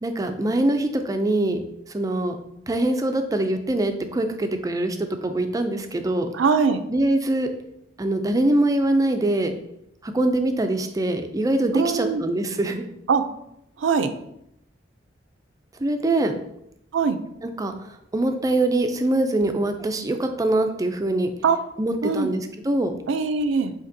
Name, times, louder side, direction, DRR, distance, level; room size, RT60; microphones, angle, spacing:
voice 1, 0.0-2.4 2.7-6.3 6.9-7.5 8.0-9.5 10.0-12.8 15.8-16.3 17.4-17.7 18.1-21.3 21.8-23.0, right 1 dB, 20° right, 7 dB, 0.4 m, -23 dB
voice 2, 6.3-6.8 11.7-12.2 13.1-13.2 13.8-14.1 16.9-17.2 21.4-21.6 22.0-22.3 23.1-23.7, right 5 dB, 80° right, 10 dB, 0.4 m, -21 dB
6.6 x 2.9 x 2.7 m, 0.79 s
head